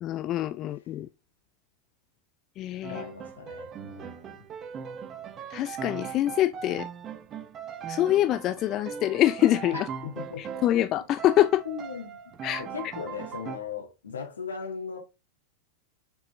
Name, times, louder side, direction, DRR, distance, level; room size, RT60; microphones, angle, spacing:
voice 1, 0.0-1.1 2.6-3.0 5.5-6.9 7.9-9.9 10.4-11.6 12.4-12.6, left 13 dB, 35° left, 0.3 m, -25 dB
Piano, 2.8-10.9 11.2-13.6, right 7 dB, 30° right, 0.8 m, -39 dB
voice 2, 2.9-4.5 9.7-10.5 11.7-12.2 12.6-15.0, left 6 dB, 70° left, 1.7 m, -38 dB
6.6 x 4.6 x 3.1 m
figure-of-eight pair, 90°, 0 cm